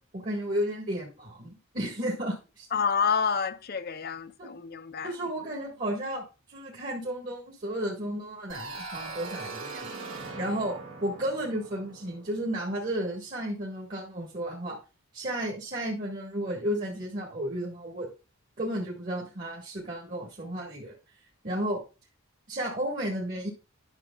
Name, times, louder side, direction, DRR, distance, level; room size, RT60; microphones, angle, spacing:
voice 1, 0.1-2.7 4.4-4.5 5.0-6.2 6.5-9.9 10.3-14.8 15.1-18.1 18.6-20.9 21.4-21.8 22.5-23.5, right 1 dB, 35° right, 1.5 m, -33 dB
voice 2, 2.7-5.1, left 6 dB, 45° left, 0.5 m, -28 dB
sound 1, 8.5-13.2, right 3 dB, 70° right, 2.0 m, -41 dB
10.5 x 6.2 x 2.3 m
head